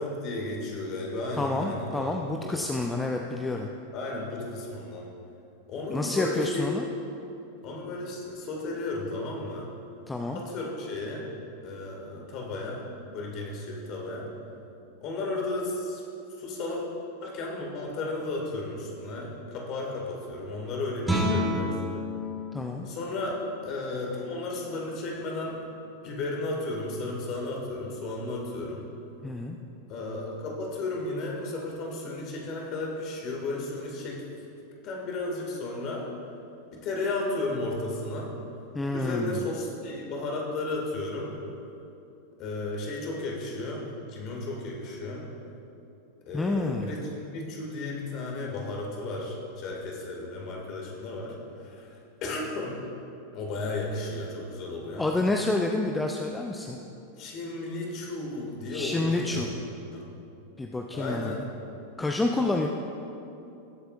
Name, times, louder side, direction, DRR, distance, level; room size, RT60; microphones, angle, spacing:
voice 1, 0.0-2.1 2.4-3.0 3.9-5.1 5.7-6.7 7.6-9.7 10.3-11.2 11.6-12.8 13.1-14.3 15.0-16.0 16.4-16.8 17.2-21.8 22.8-25.6 26.0-28.9 29.9-34.2 34.8-36.1 36.7-38.4 38.9-41.3 42.4-45.3 46.3-52.8 53.3-55.1 57.2-59.5 59.9-60.2 60.9-61.4, left 2 dB, 40° left, -1 dB, 2.2 m, -34 dB
voice 2, 1.3-3.7 5.9-6.8 10.1-10.4 22.5-22.9 29.2-29.6 38.7-39.4 46.3-46.9 55.0-56.8 58.7-59.5 60.6-61.4 62.0-62.7, left 2 dB, 10° left, 2 dB, 0.5 m, -28 dB
Guitar, 21.0-26.6, left 1 dB, 5° right, 1.9 m, -33 dB
19.0 x 7.9 x 2.6 m, 2.8 s
figure-of-eight pair, 90°, 0 cm